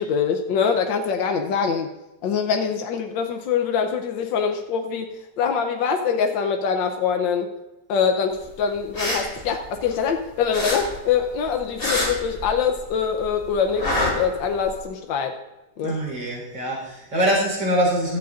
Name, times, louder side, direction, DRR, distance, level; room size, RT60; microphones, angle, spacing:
voice 1, 0.0-1.9 2.2-7.5 7.9-15.4 15.8-16.0, left 6 dB, 85° left, 4 dB, 1.5 m, -24 dB
sound 1, 8.8-10.2 10.5-12.9 13.2-14.8, left 1 dB, 30° left, 3.1 m, -26 dB
voice 2, 15.8-18.2, right 1 dB, 80° right, -3 dB, 4.9 m, -23 dB
16.0 x 13.0 x 2.5 m, 1.0 s
omnidirectional pair, 2.0 m